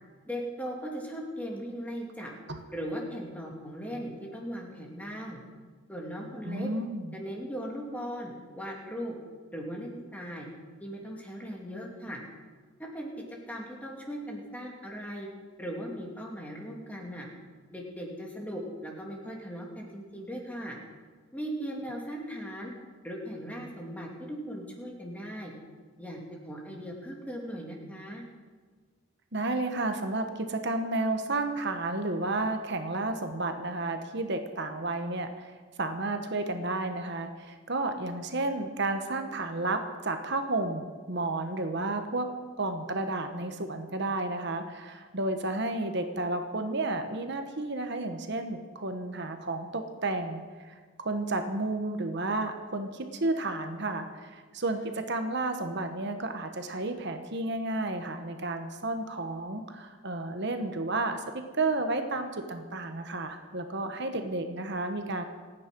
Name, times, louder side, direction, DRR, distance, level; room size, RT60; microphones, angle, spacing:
voice 1, 0.2-2.3 2.7-5.4 5.9-6.7 7.1-9.1 9.5-10.5 10.8-12.2 12.8-13.1 13.5-15.3 15.6-17.3 17.7-20.8 21.3-22.7 23.0-25.5 26.0-26.2 26.4-28.2 54.7-54.9, equal, 5° left, -1 dB, 2.7 m, -38 dB
voice 2, 6.4-7.1 29.3-42.3 42.6-61.2 61.5-65.2, right 2 dB, 55° right, 6 dB, 1.3 m, -32 dB
28.0 x 9.6 x 5.4 m, 1.5 s
head